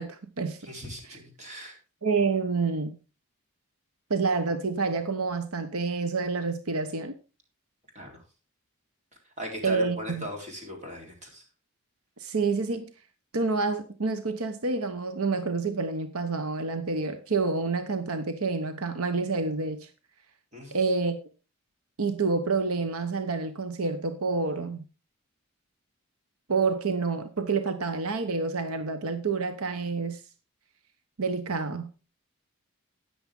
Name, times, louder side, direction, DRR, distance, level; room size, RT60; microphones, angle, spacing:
voice 1, 0.0-0.6 1.1-1.2 2.0-3.0 4.1-7.1 9.6-10.3 12.2-12.9 13.3-19.9 20.7-21.2 22.0-24.8 26.5-30.2 31.2-31.9, right 4 dB, 85° right, 1.0 m, -28 dB
voice 2, 0.6-1.8 7.9-8.2 9.4-11.4 20.5-20.8, equal, 30° right, 3.9 m, -39 dB
13.5 x 9.7 x 3.7 m
head